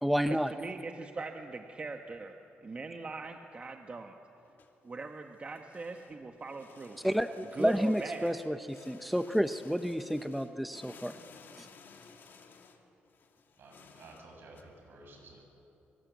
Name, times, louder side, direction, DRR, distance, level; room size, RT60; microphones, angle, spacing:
voice 1, 0.0-0.5 7.0-11.1 11.6-11.7, equal, ahead, 9 dB, 0.7 m, -30 dB
voice 2, 0.5-2.3 2.6-4.1 4.8-7.0 7.5-8.3, right 3 dB, 30° right, 5 dB, 1.3 m, -40 dB
sound 1, 4.4-14.6, left 5 dB, 60° left, 2.5 m, -57 dB
voice 3, 13.6-15.4, right 2 dB, 65° right, 1 dB, 7.3 m, -53 dB
25.5 x 24.0 x 8.2 m, 2.9 s
cardioid pair, 120°, 4 cm